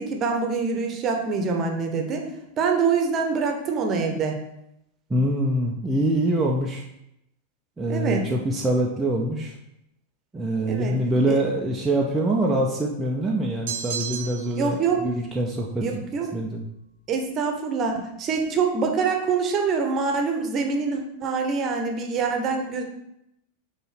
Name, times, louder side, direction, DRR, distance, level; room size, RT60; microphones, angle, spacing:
voice 1, 0.0-2.2 2.6-4.4 7.9-8.3 10.7-10.9 14.6-15.0 15.8-16.3 17.1-22.8, right 5 dB, 30° right, 3 dB, 1.1 m, -25 dB
voice 2, 5.1-6.8 7.8-9.6 10.3-15.8 16.3-16.7, right 1 dB, 10° right, -3 dB, 0.8 m, -24 dB
sound 1, 13.7-14.7, right 7 dB, 60° right, 0.7 m, -32 dB
5.5 x 4.1 x 5.9 m, 0.83 s
figure-of-eight pair, 90°, 0 cm